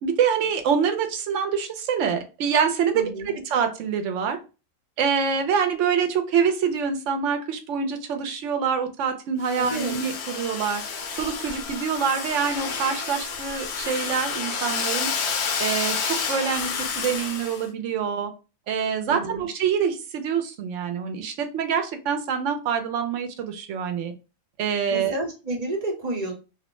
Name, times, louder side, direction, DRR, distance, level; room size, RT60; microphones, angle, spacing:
voice 1, 0.0-4.4 5.0-10.8 11.2-15.1 15.6-18.3 18.7-24.1 24.6-25.2, right 7 dB, 75° right, 7 dB, 0.9 m, -25 dB
voice 2, 2.9-3.3 9.6-10.0 19.1-19.5 24.9-26.3, right 2 dB, 35° right, -1 dB, 0.9 m, -30 dB
Domestic sounds home sounds, 9.4-17.6, left 5 dB, 65° left, 0.8 m, -30 dB
2.5 x 2.1 x 2.9 m, 0.30 s
omnidirectional pair, 1.3 m